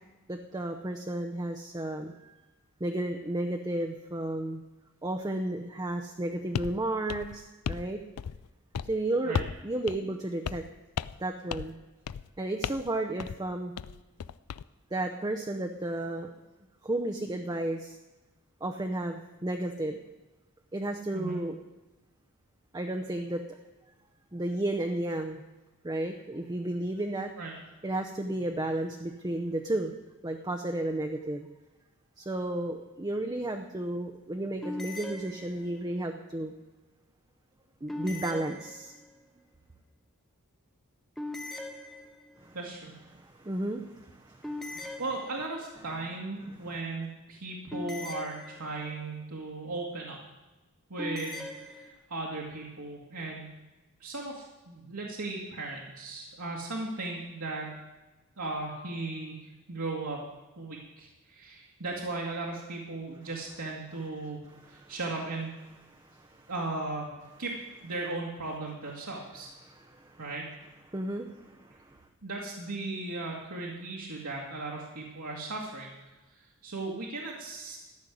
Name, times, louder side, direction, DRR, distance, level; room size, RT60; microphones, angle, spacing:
voice 1, 0.3-2.4 2.8-4.6 5.0-8.0 8.9-10.7 11.2-11.8 12.4-13.7 14.9-16.3 16.8-18.0 18.6-20.0 20.7-21.6 22.7-23.6 24.3-25.4 25.8-27.3 27.8-29.9 30.2-31.5 32.2-36.5 37.8-38.9 42.4-42.6 43.1-45.0 46.4-46.6 64.5-64.9 65.9-66.5 69.6-70.2 70.9-72.0, right 1 dB, 20° right, 4 dB, 0.7 m, -33 dB
sound 1, 6.5-6.8 7.1-7.9 8.2-8.5 8.7-8.9 9.3-9.6 9.9-10.0 10.4-10.7 11.0-11.2 11.5-11.8 12.1-12.3 12.6-12.9 13.2-13.4 13.8-14.6, left 7 dB, 90° left, 0.4 m, -35 dB
sound 2, 34.6-35.9 37.9-39.2 41.2-42.5 44.4-45.7 47.7-49.0 51.0-51.9, left 2 dB, ahead, 1.2 m, -40 dB
voice 2, 42.5-42.9 45.0-50.2 50.9-53.5 54.0-57.8 58.4-60.2 60.6-65.5 66.5-67.1 67.4-67.6 67.8-69.5 70.2-70.5 72.2-75.9 76.3-77.8, right 2 dB, 70° right, -3 dB, 2.0 m, -37 dB
14.0 x 6.5 x 9.8 m, 1.1 s
head